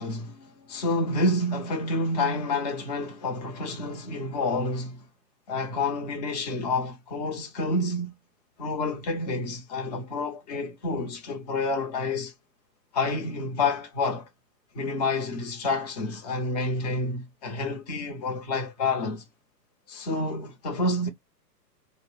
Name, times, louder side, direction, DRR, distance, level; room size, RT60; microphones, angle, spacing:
voice 1, 0.0-5.1 5.5-8.1 8.6-12.3 12.9-14.3 14.7-19.2 19.9-21.1, left 2 dB, 25° left, 0.5 m, -29 dB
2.5 x 2.0 x 3.5 m
hypercardioid pair, 135°, 50 cm